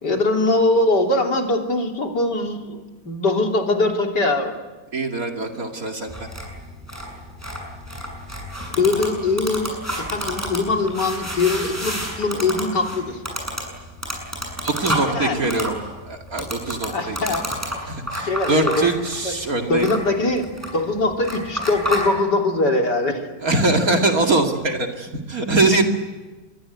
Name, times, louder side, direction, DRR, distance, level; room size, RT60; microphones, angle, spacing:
voice 1, 0.0-4.5 8.8-13.2 15.0-15.6 16.9-17.4 18.2-18.9 19.2-19.3 19.7-23.3, left 2 dB, 80° left, 2 dB, 3.8 m, -22 dB
voice 2, 4.9-6.3 14.6-15.7 16.1-17.2 17.9-19.9 23.4-25.8, right 2 dB, 55° right, 3 dB, 2.8 m, -22 dB
sound 1, 6.1-22.1, equal, 10° right, 7.3 m, -30 dB
26.5 x 23.0 x 9.5 m, 1.3 s
omnidirectional pair, 1.8 m